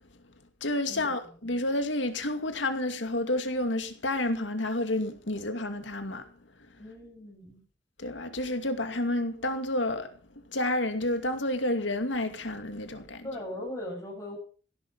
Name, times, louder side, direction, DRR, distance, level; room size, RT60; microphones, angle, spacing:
voice 1, 0.6-6.3 8.0-13.3, left 1 dB, 85° left, 2.5 m, -30 dB
voice 2, 6.8-7.6 13.2-14.4, left 1 dB, 20° left, 6.3 m, -39 dB
17.0 x 12.0 x 5.6 m
head